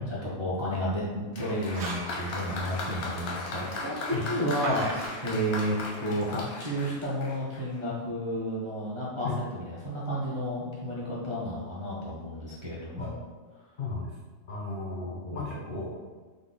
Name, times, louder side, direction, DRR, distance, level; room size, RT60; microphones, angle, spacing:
voice 1, 0.0-13.2 15.0-16.0, equal, 35° right, -7 dB, 0.4 m, -32 dB
Applause, 1.3-7.8, left 3 dB, 90° left, 1.2 m, -37 dB
sound 1, 1.6-2.2 4.6-5.1, right 4 dB, 80° right, 1.0 m, -36 dB
voice 2, 13.8-14.1 14.5-16.0, left 3 dB, 65° left, -4 dB, 0.5 m, -35 dB
3.7 x 2.1 x 3.7 m, 1.4 s
omnidirectional pair, 1.5 m